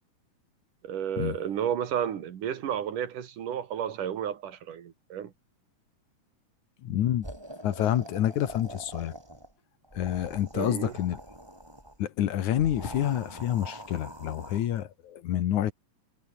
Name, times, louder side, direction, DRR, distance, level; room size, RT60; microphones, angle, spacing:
voice 1, 0.8-5.3 10.5-10.9, right 9 dB, 75° right, 3.6 m, -32 dB
voice 2, 6.8-7.3 7.6-9.1 9.9-11.2 12.0-15.7, left 11 dB, 70° left, 2.7 m, -28 dB
sound 1, 7.2-9.5 9.8-12.0 12.5-14.8, right 1 dB, 5° right, 5.5 m, -44 dB
omnidirectional pair, 3.7 m